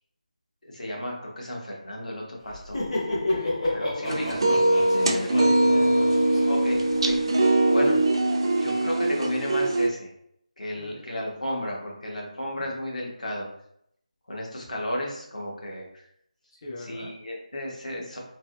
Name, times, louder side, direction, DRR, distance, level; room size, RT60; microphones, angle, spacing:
voice 1, 0.6-2.8 3.7-4.6 6.4-7.2 7.7-7.9 8.6-10.1 10.6-13.5 14.3-16.0 16.8-18.2, left 1 dB, 75° left, -2 dB, 1.2 m, -33 dB
Laughter, 2.5-7.2, left 2 dB, 55° left, 1.3 m, -31 dB
sound 1, 4.1-9.9, right 2 dB, 40° right, 0.3 m, -22 dB
voice 2, 4.9-6.4 10.8-11.0 16.6-17.1, left 2 dB, 30° left, -3 dB, 0.4 m, -36 dB
3.1 x 2.7 x 2.3 m, 0.72 s
figure-of-eight pair, 160°, 4 cm